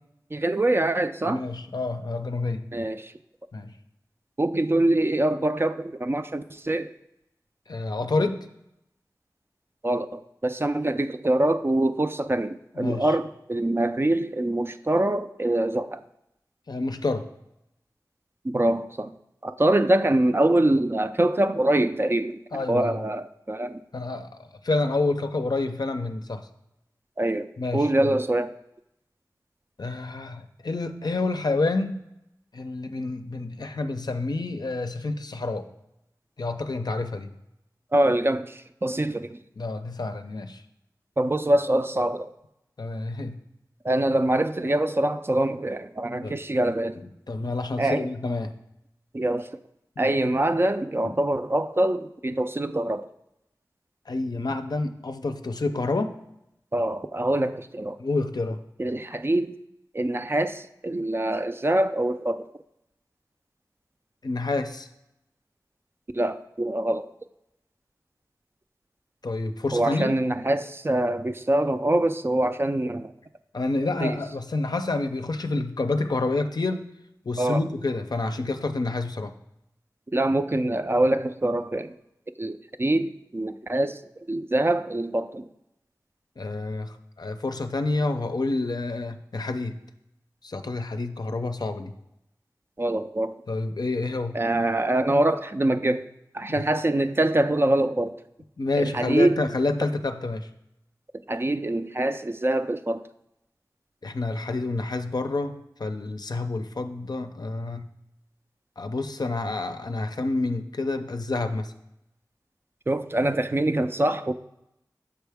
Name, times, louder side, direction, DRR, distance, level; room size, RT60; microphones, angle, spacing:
voice 1, 0.3-1.4 2.7-3.1 4.4-6.9 9.8-16.0 18.4-19.1 19.4-23.8 27.2-28.6 37.9-39.4 41.2-42.3 43.8-47.0 47.8-48.1 49.1-49.5 50.0-53.1 56.7-58.0 58.8-59.6 59.9-62.5 66.1-67.1 69.7-73.1 74.0-74.2 77.4-77.6 80.1-81.9 82.4-84.0 84.3-85.5 92.8-93.4 94.3-96.1 96.3-98.1 98.8-99.5 101.3-103.0 112.9-114.3, right 1 dB, 30° right, 0.3 m, -24 dB
voice 2, 1.2-2.7 3.5-3.7 7.7-8.5 12.8-13.1 16.7-17.3 22.5-23.0 23.9-26.5 27.6-28.2 29.8-32.0 32.5-35.7 36.4-37.3 39.6-40.6 42.8-43.4 46.2-46.3 47.0-48.5 50.0-50.1 51.0-51.1 54.1-56.1 58.0-58.6 64.2-64.9 69.2-70.1 73.5-76.9 77.3-79.3 86.4-89.8 90.4-91.9 93.5-94.4 96.5-96.6 98.6-100.5 104.0-107.9 108.8-111.7, left 2 dB, 65° left, 0.5 m, -28 dB
6.9 x 4.6 x 3.4 m
wide cardioid pair, 45°, 7 cm